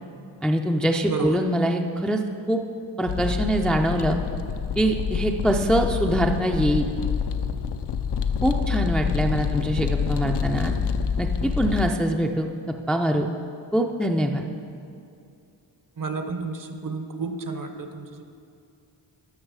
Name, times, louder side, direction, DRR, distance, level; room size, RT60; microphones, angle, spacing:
voice 1, 0.4-2.2 2.5-2.6 3.0-4.2 4.8-6.9 8.4-10.7 11.2-12.5 12.9-13.3 13.7-14.4, equal, ahead, 3 dB, 0.4 m, -23 dB
sound 1, 3.1-11.9, left 6 dB, 65° left, 0.6 m, -27 dB
voice 2, 16.0-18.2, right 4 dB, 45° right, 7 dB, 0.8 m, -31 dB
13.0 x 5.8 x 4.8 m, 2.6 s
cardioid pair, 75°, 43 cm